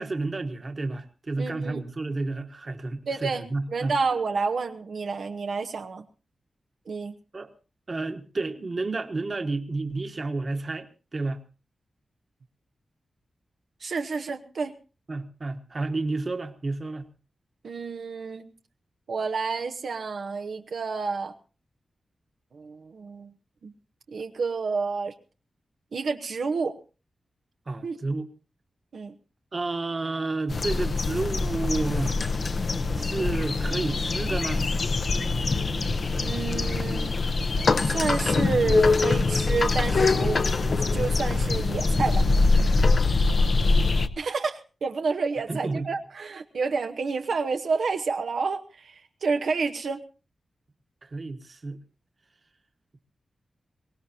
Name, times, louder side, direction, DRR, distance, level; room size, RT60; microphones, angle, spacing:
voice 1, 0.0-3.9 7.3-7.5 7.9-11.4 15.1-17.0 27.7-28.3 29.5-32.2 32.9-34.6 45.5-45.9 51.0-51.8, right 3 dB, 35° right, 1.4 m, -31 dB
voice 2, 1.4-1.8 3.1-6.0 6.9-7.1 13.8-14.7 17.6-18.5 19.1-21.3 22.5-23.3 23.6-23.7 24.1-25.1 25.9-26.8 27.8-28.0 28.9-29.1 36.2-37.2 37.8-40.4 40.7-42.3 44.2-50.0, right 4 dB, 70° right, 0.9 m, -29 dB
sound 1, 30.5-44.1, left 3 dB, 45° left, 0.8 m, -24 dB
23.0 x 19.0 x 2.8 m
wide cardioid pair, 165°, 0 cm